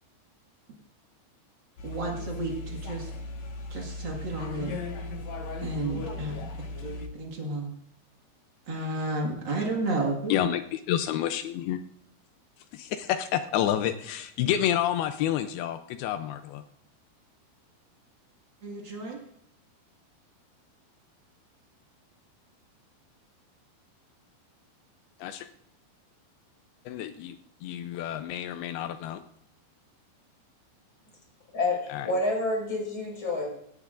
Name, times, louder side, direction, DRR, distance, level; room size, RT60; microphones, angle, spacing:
sound 1, 1.8-7.1, left 2 dB, 60° left, 2.0 m, -37 dB
voice 1, 1.8-3.1 3.7-4.8 5.6-6.4 6.8-7.7 8.7-10.3 18.6-19.2, right 2 dB, 90° right, -1 dB, 1.0 m, -32 dB
voice 2, 10.3-11.8 12.7-16.6 25.2-25.5 26.9-27.4 27.6-29.2 31.9-32.1, left 11 dB, 90° left, 9 dB, 2.2 m, -29 dB
voice 3, 31.5-33.5, left 2 dB, 25° left, -1 dB, 5.8 m, -28 dB
19.0 x 17.0 x 2.5 m, 0.73 s
omnidirectional pair, 5.2 m